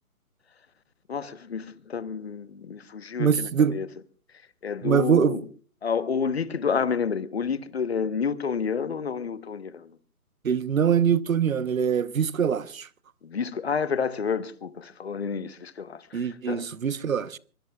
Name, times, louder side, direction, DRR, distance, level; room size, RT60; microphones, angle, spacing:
voice 1, 1.1-3.9 4.6-5.4 5.8-9.9 13.2-16.7, left 6 dB, 45° left, 1.1 m, -29 dB
voice 2, 3.2-3.8 4.8-5.4 10.4-12.9 16.1-17.4, right 7 dB, 60° right, 1.0 m, -23 dB
24.5 x 22.5 x 2.4 m
hypercardioid pair, 165°, 45 cm